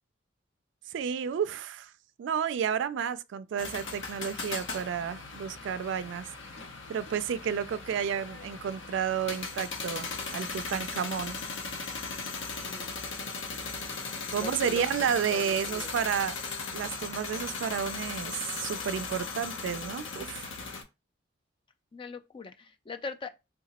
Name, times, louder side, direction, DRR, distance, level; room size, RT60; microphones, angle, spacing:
voice 1, 0.9-1.9 2.2-6.3 6.9-11.4 14.3-16.4 16.7-20.5, right 7 dB, 70° right, 0.3 m, -31 dB
sound 1, 3.6-20.8, left 4 dB, 80° left, 0.7 m, -38 dB
voice 2, 12.6-12.9 14.4-16.2 21.9-23.3, left 4 dB, 25° left, 0.3 m, -42 dB
3.5 x 2.8 x 2.9 m
head